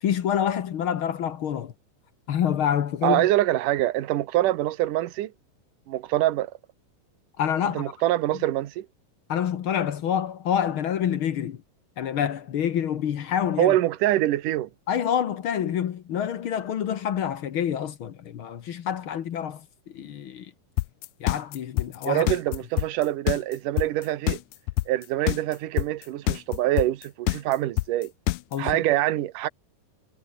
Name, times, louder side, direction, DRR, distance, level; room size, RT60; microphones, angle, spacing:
voice 1, 0.0-1.7 2.3-3.3 7.4-7.9 9.3-11.6 12.0-13.8 14.9-20.5 21.2-22.3 28.5-28.8, left 9 dB, 60° left, 1.4 m, -27 dB
voice 2, 3.0-5.3 5.9-6.5 7.7-8.9 13.6-14.7 22.1-24.4 24.9-28.1 28.6-29.5, right 14 dB, 70° right, 2.7 m, -25 dB
sound 1, 20.8-28.7, left 20 dB, 85° left, 1.6 m, -25 dB
omnidirectional pair, 3.9 m